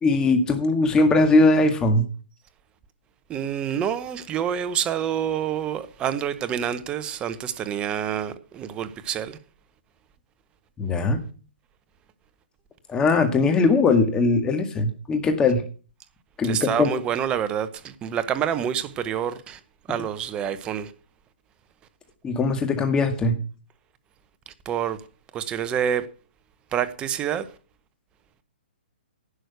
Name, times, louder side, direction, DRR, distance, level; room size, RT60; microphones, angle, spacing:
voice 1, 0.0-2.1 10.8-11.2 12.9-15.6 16.4-16.9 22.2-23.4, left 3 dB, 15° left, 1.8 m, -20 dB
voice 2, 3.3-9.4 16.4-19.6 19.9-20.9 24.5-25.0 25.3-26.1 26.7-27.5, right 9 dB, 15° right, 0.9 m, -27 dB
11.5 x 6.2 x 8.1 m
hypercardioid pair, 150°, 6 cm